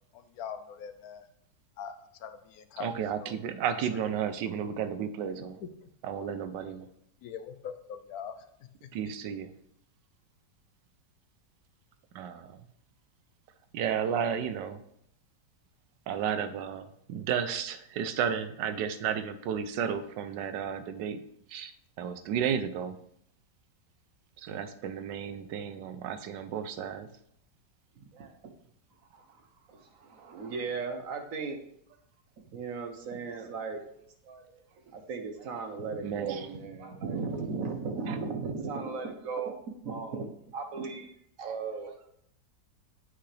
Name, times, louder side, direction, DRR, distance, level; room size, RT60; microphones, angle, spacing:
voice 1, 0.1-1.3 1.8-2.9 3.2-3.4 3.9-4.0 5.6-5.9 6.3-6.4 7.2-8.5 8.8-8.9, left 7 dB, 70° left, 10 dB, 1.0 m, -42 dB
voice 2, 2.8-5.6 6.0-6.9 8.9-9.5 12.1-12.6 13.7-14.8 16.1-21.2 21.5-21.7 22.0-23.0 24.4-27.1 36.0-36.5 38.1-38.2, right 8 dB, 85° right, 11 dB, 1.3 m, -33 dB
voice 3, 28.0-28.4 29.1-29.4 29.7-31.6 32.5-34.0 34.2-39.6 39.8-41.1 41.4-42.1, right 4 dB, 55° right, 6 dB, 1.2 m, -37 dB
8.5 x 5.8 x 3.3 m, 0.71 s
omnidirectional pair, 1.9 m